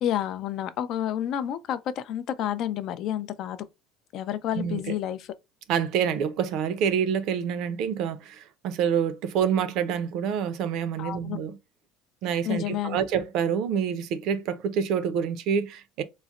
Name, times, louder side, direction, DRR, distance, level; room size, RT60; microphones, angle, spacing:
voice 1, 0.0-3.6 4.1-5.3 11.0-11.4 12.4-13.0, left 11 dB, 50° left, 0.4 m, -30 dB
voice 2, 5.7-11.6 12.2-16.0, right 7 dB, 55° right, 0.5 m, -27 dB
3.9 x 2.1 x 2.3 m
cardioid pair, 155°, 0 cm